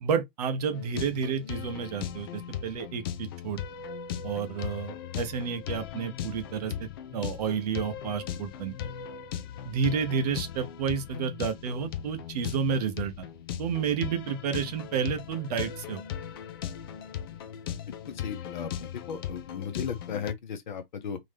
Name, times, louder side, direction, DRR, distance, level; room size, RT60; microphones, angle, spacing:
voice 1, 0.0-3.6 4.2-6.7 7.1-8.7 9.7-13.1 13.6-16.0, right 6 dB, 40° right, 0.9 m, -30 dB
sound 1, 0.7-20.3, left 9 dB, 25° left, 0.4 m, -38 dB
voice 2, 17.9-21.2, left 7 dB, 50° left, 1.0 m, -36 dB
3.8 x 3.1 x 3.3 m
figure-of-eight pair, 115°, 30 cm